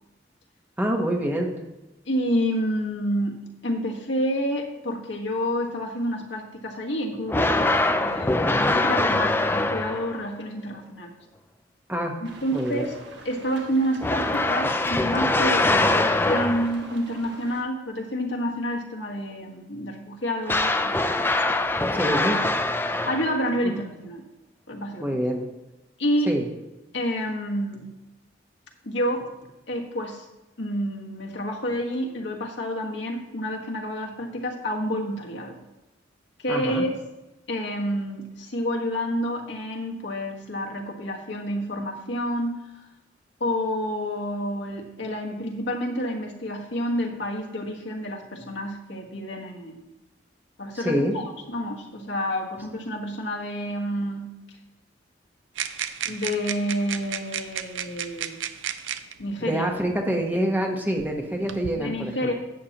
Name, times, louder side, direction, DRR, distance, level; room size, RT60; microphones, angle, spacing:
voice 1, 0.8-1.5 8.4-8.7 11.9-12.2 12.5-12.9 21.9-22.4 23.6-23.7 25.0-25.5 26.3-26.5 36.5-36.8 50.7-51.2 59.4-62.3, right 1 dB, 10° right, 1 dB, 1.0 m, -26 dB
voice 2, 2.0-11.1 12.2-12.9 13.2-21.3 23.1-24.2 24.7-25.2 26.0-26.3 26.9-27.9 28.8-29.3 29.7-30.3 30.6-35.6 36.4-37.0 37.5-42.6 43.4-49.8 50.6-54.3 56.0-58.4 59.2-59.7 61.7-62.3, equal, 70° left, 0 dB, 1.5 m, -29 dB
sound 1, 7.3-10.3 14.0-16.9 20.5-23.6, left 2 dB, 10° left, 0.4 m, -23 dB
sound 2, 12.2-17.6, right 2 dB, 65° right, 1.4 m, -44 dB
sound 3, 55.6-59.1 60.1-60.2 61.0-61.7, right 9 dB, 85° right, 0.5 m, -33 dB
11.5 x 8.6 x 2.9 m, 1.0 s
head